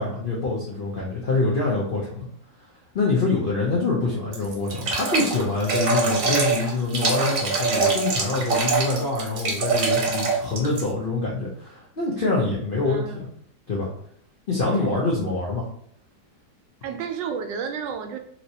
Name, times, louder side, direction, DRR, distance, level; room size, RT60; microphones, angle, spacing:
voice 1, 0.0-2.3 2.9-13.3 13.7-13.9 14.5-15.7, left 3 dB, 70° left, -4 dB, 0.5 m, -25 dB
voice 2, 4.1-4.6 12.8-13.3 16.8-18.2, right 6 dB, 90° right, 5 dB, 1.3 m, -32 dB
sound 1, 4.3-10.9, right 4 dB, 60° right, 1.0 m, -24 dB
3.1 x 2.8 x 2.7 m, 0.66 s
omnidirectional pair, 1.9 m